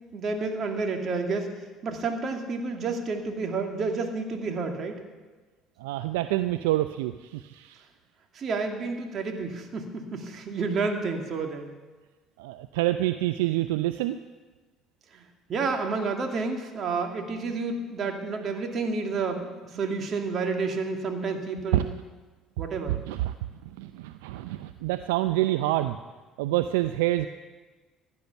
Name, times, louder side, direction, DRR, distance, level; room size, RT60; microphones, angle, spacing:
voice 1, 0.1-1.5 1.8-5.0 8.3-11.7 15.1-15.2 15.5-21.9 22.6-23.0, right 4 dB, 50° right, 3 dB, 2.4 m, -30 dB
voice 2, 5.8-7.8 12.4-14.2 21.7-21.8 22.9-23.3 23.8-26.0 26.4-27.3, right 15 dB, 80° right, 10 dB, 0.4 m, -27 dB
15.5 x 10.5 x 7.1 m, 1.3 s
hypercardioid pair, 60°, 0 cm